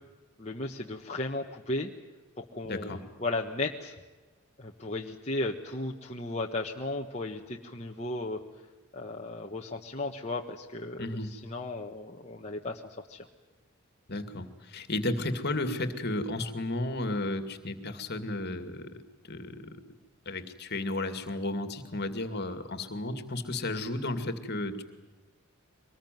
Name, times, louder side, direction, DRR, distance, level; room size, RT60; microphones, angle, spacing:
voice 1, 0.4-1.9 2.4-3.9 4.6-8.4 8.9-13.3, left 2 dB, 30° left, 0 dB, 1.4 m, -35 dB
voice 2, 2.6-3.0 11.0-11.3 14.1-18.9 19.3-19.7 20.3-24.8, left 2 dB, 45° left, 9 dB, 2.5 m, -33 dB
24.5 x 20.5 x 9.3 m, 1.3 s
head